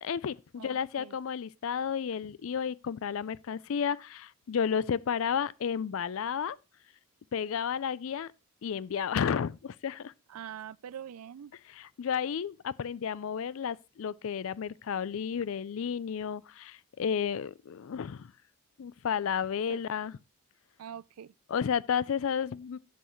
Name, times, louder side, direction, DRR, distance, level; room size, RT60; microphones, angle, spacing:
voice 1, 0.0-6.6 7.3-8.3 8.6-10.1 11.7-18.3 18.8-20.1 21.5-22.8, left 7 dB, 65° left, 0.4 m, -32 dB
voice 2, 0.6-1.2 10.3-11.5 19.7-19.8 20.8-21.3, right 9 dB, 80° right, 0.4 m, -44 dB
12.0 x 7.8 x 3.1 m
head